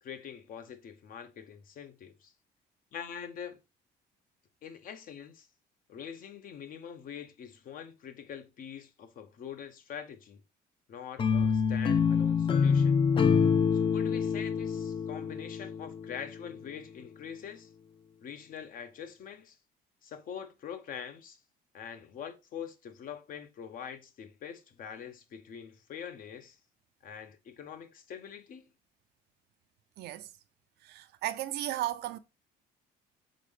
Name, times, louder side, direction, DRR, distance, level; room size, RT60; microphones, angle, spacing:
voice 1, 0.0-2.3 2.9-3.6 4.6-5.5 5.9-10.4 10.9-13.0 13.7-17.7 18.2-19.6 20.0-21.4 21.7-26.6 27.0-28.7, left 8 dB, 55° left, 0.8 m, -44 dB
sound 1, 11.2-16.3, left 6 dB, 30° left, 0.4 m, -26 dB
voice 2, 30.0-30.3 30.8-32.2, right 14 dB, 75° right, 0.5 m, -35 dB
3.8 x 3.7 x 3.4 m
cardioid pair, 110°, 17 cm